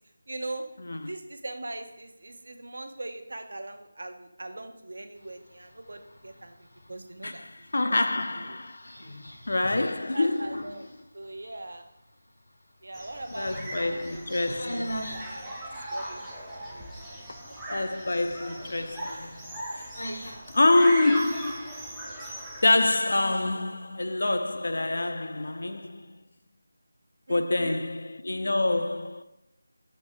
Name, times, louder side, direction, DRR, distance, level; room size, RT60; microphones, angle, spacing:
voice 1, 0.3-0.7 1.1-7.4 8.4-8.6 9.7-11.9 12.8-15.6 15.9-16.4 16.7-18.0 20.0-20.5 27.3-27.8, right 2 dB, 65° right, 0.8 m, -41 dB
sound 1, 5.2-23.4, equal, 75° left, 1.1 m, -44 dB
voice 2, 7.2-8.9 9.5-10.7 13.4-15.1 17.3-19.5 20.5-22.1 22.6-26.2 27.3-29.2, left 2 dB, 55° left, 0.4 m, -26 dB
sound 2, 12.9-22.9, right 1 dB, ahead, 0.5 m, -39 dB
6.3 x 3.1 x 4.8 m
figure-of-eight pair, 180°, 0 cm